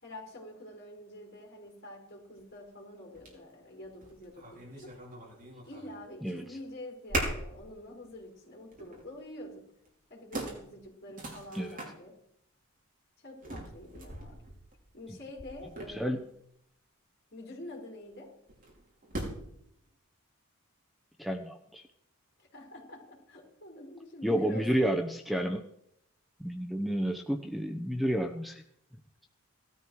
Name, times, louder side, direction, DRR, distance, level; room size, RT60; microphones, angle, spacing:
voice 1, 0.0-4.9 5.6-9.7 10.1-12.2 13.2-14.5 14.9-16.2 17.3-18.4 22.4-25.0, left 1 dB, 45° left, -1 dB, 4.9 m, -46 dB
sound 1, 2.4-2.5 3.1-3.4 3.8-6.0 6.3-6.7 7.1-7.6 8.0-8.2 8.7-9.1 9.9-10.0 10.3-11.9 13.4-16.3 18.5-19.6, right 1 dB, 40° right, 5.0 m, -39 dB
voice 2, 21.2-21.8 24.2-25.7 26.4-28.6, equal, ahead, 5 dB, 0.9 m, -30 dB
18.5 x 13.0 x 4.8 m, 0.75 s
head